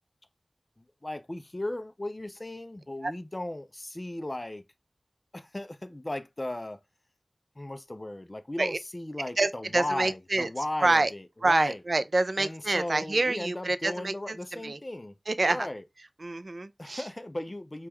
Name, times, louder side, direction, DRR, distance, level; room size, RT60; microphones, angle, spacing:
voice 1, 0.8-4.6 5.3-6.8 7.6-11.8 12.4-15.1 15.4-15.8 16.8-17.9, left 1 dB, 30° left, 0.4 m, -36 dB
voice 2, 9.4-10.5 10.8-11.1 11.4-14.8 15.3-15.7 16.2-17.1, right 2 dB, 65° right, 0.3 m, -27 dB
3.4 x 2.2 x 3.0 m
wide cardioid pair, 65°, 0 cm